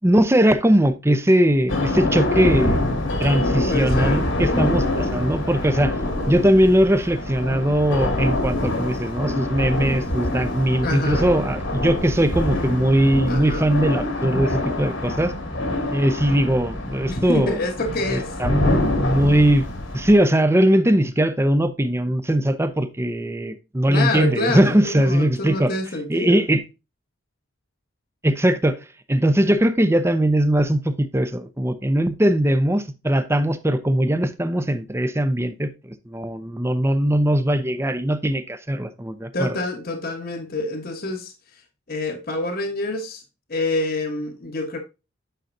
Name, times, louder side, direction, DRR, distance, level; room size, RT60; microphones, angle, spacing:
voice 1, 0.0-2.8 3.2-5.9 6.3-15.3 15.9-17.6 18.1-19.7 19.9-25.7 26.1-26.6 28.2-28.8 29.1-35.7 36.1-39.6, right 1 dB, 15° right, 0.7 m, -20 dB
sound 1, 1.7-20.2, left 1 dB, 75° left, 2.3 m, -25 dB
voice 2, 3.6-4.3 10.8-11.3 13.3-13.7 17.0-18.4 23.9-26.4 39.3-41.3 41.9-43.2 43.5-44.8, left 2 dB, 50° left, 1.2 m, -27 dB
9.2 x 5.7 x 2.6 m
head